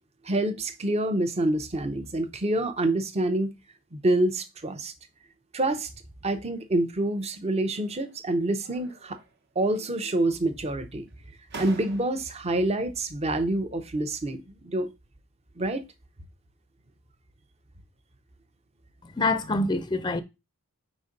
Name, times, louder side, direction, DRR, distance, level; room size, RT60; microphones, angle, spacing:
voice 1, 0.2-3.5 3.9-4.9 5.5-5.9 6.2-9.2 9.6-11.1 11.6-14.9 15.6-15.8, right 1 dB, 30° right, 0.7 m, -27 dB
sound 1, 7.6-8.2 8.6-9.4 9.7-10.4 11.1-11.2 11.5-12.5, right 3 dB, 50° right, 1.0 m, -45 dB
voice 2, 19.2-20.2, left 2 dB, 20° left, 0.5 m, -25 dB
4.6 x 4.1 x 5.1 m
head